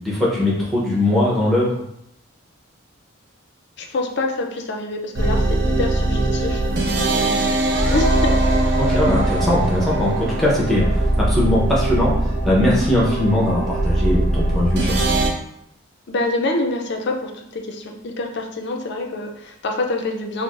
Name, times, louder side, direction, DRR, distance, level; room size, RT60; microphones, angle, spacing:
voice 1, 0.0-1.8 8.8-12.1 12.4-15.3, left 1 dB, ahead, -6 dB, 0.7 m, -20 dB
voice 2, 3.8-7.5 7.9-8.4 8.7-8.8 16.1-20.4, left 2 dB, 50° left, 2 dB, 0.4 m, -26 dB
sound 1, 5.1-15.3, right 2 dB, 50° right, 0.5 m, -20 dB
4.5 x 2.0 x 2.4 m, 0.78 s
head